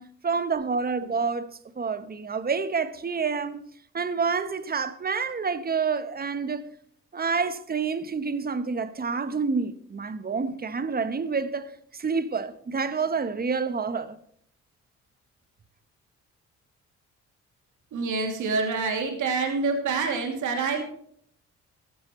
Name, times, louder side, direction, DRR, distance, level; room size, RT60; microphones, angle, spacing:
voice 1, 0.0-3.6 3.9-6.7 7.1-14.2, right 5 dB, 30° right, 1.2 m, -28 dB
voice 2, 17.9-20.8, right 4 dB, 80° right, 2.8 m, -26 dB
15.0 x 12.5 x 3.2 m
cardioid pair, 90°, 30 cm